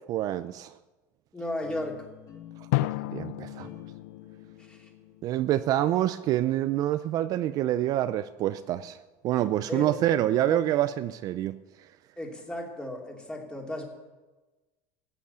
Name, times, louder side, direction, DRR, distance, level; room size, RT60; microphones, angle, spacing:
voice 1, 0.1-0.7 3.1-3.7 5.2-9.0 9.2-11.6, right 13 dB, 50° right, 0.5 m, -26 dB
voice 2, 1.3-2.1 4.6-4.9 9.7-10.0 10.4-10.6 12.2-13.9, left 1 dB, 10° left, 3.0 m, -35 dB
sound 1, 1.6-6.7, left 7 dB, 50° left, 2.5 m, -50 dB
Drum, 2.7-5.4, left 21 dB, 75° left, 0.4 m, -33 dB
14.5 x 9.2 x 8.2 m
supercardioid pair, 125°, 8 cm